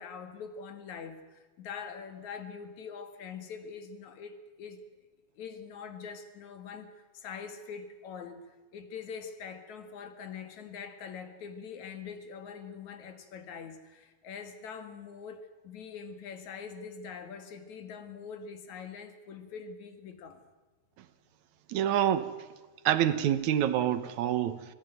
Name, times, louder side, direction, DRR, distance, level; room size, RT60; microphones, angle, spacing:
voice 1, 0.0-4.8 5.4-8.4 8.7-20.4, left 6 dB, 75° left, 9 dB, 3.2 m, -43 dB
voice 2, 21.7-22.3 22.9-24.6, right 11 dB, 80° right, 13 dB, 2.4 m, -26 dB
25.5 x 16.0 x 9.2 m, 1.3 s
omnidirectional pair, 3.4 m